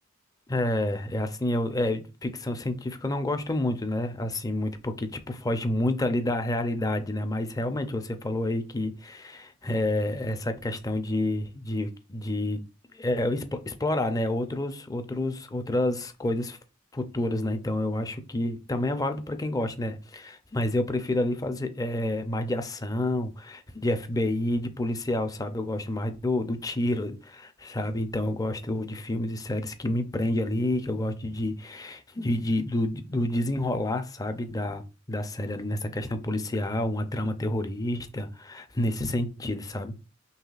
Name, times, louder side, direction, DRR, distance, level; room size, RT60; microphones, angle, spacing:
voice 1, 0.5-12.6 12.9-16.6 16.9-39.9, left 1 dB, 20° left, 0.5 m, -29 dB
5.5 x 3.1 x 2.4 m
head